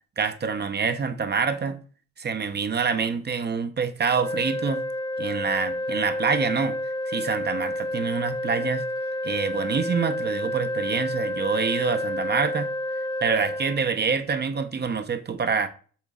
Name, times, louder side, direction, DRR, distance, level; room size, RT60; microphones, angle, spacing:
voice 1, 0.2-1.8 2.2-4.8 5.2-6.8 7.1-8.8 9.2-12.7 13.2-15.7, right 5 dB, 35° right, 0.6 m, -26 dB
sound 1, 4.1-13.8, left 1 dB, 15° left, 0.4 m, -30 dB
7.2 x 4.0 x 3.7 m
cardioid pair, 90°, 30 cm